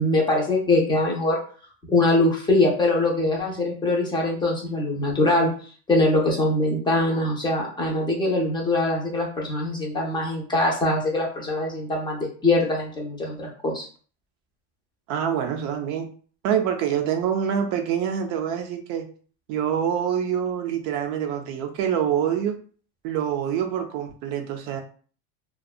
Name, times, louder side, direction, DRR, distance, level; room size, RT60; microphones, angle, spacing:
voice 1, 0.0-1.4 1.9-5.5 5.9-13.9, left 2 dB, 15° left, -2 dB, 0.5 m, -22 dB
voice 2, 15.1-16.1 16.4-19.1 19.5-22.6 23.0-24.8, right 9 dB, 50° right, 4 dB, 0.4 m, -25 dB
2.6 x 2.3 x 2.3 m, 0.42 s
supercardioid pair, 145°, 35 cm